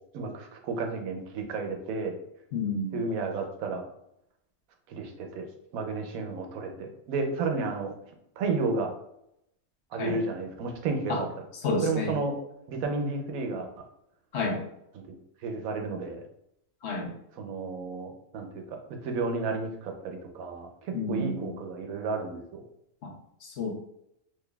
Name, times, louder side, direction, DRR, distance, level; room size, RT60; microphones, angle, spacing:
voice 1, 0.1-2.1 2.9-3.8 4.9-5.5 5.7-7.9 8.4-8.9 9.9-11.3 11.8-12.3 12.7-13.7 14.9-16.2 17.4-22.6, right 3 dB, 90° right, 3 dB, 1.1 m, -32 dB
voice 2, 2.5-3.0 10.0-10.2 11.1-11.2 11.6-12.2 14.3-14.6 16.8-17.1 20.9-21.5 23.0-23.1 23.4-23.7, left 3 dB, 60° left, 1 dB, 0.9 m, -30 dB
3.7 x 3.0 x 2.3 m, 0.76 s
omnidirectional pair, 1.4 m